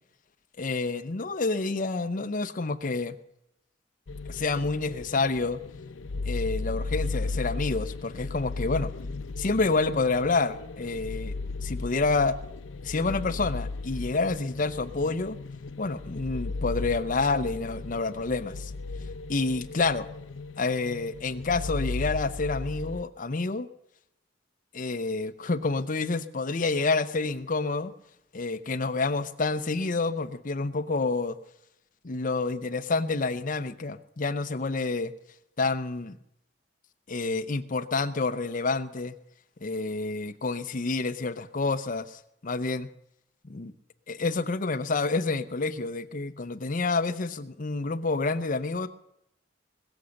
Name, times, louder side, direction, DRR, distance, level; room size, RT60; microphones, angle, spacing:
voice 1, 0.6-3.2 4.3-5.6 6.2-8.9 9.4-11.3 11.6-12.4 12.8-15.4 15.8-18.7 19.3-20.1 20.6-23.7 24.7-27.9 28.3-31.4 32.0-35.1 35.6-36.2 37.1-39.1 39.6-42.9 43.4-43.7 44.1-48.9, left 3 dB, 45° left, 11 dB, 0.8 m, -28 dB
sound 1, 4.1-23.0, left 3 dB, 85° left, 0.6 m, -36 dB
21.5 x 7.1 x 6.5 m, 0.81 s
head